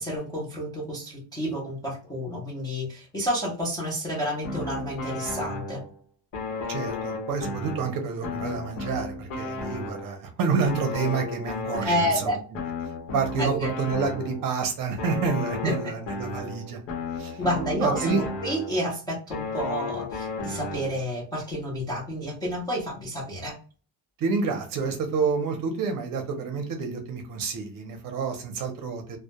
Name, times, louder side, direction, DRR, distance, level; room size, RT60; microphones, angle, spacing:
voice 1, 0.0-5.8 11.9-12.4 13.4-14.0 15.6-15.7 17.4-23.6, equal, 10° left, 0.3 m, -30 dB
sound 1, 4.4-6.0 6.3-10.3 10.7-14.5 15.0-18.9 19.3-21.1, left 3 dB, 85° left, 0.9 m, -34 dB
voice 2, 6.7-12.3 12.8-16.8 17.1-17.4 17.8-18.2 24.2-29.2, right 5 dB, 50° right, 0.6 m, -28 dB
2.1 x 2.1 x 2.8 m
cardioid pair, 175°, 45 cm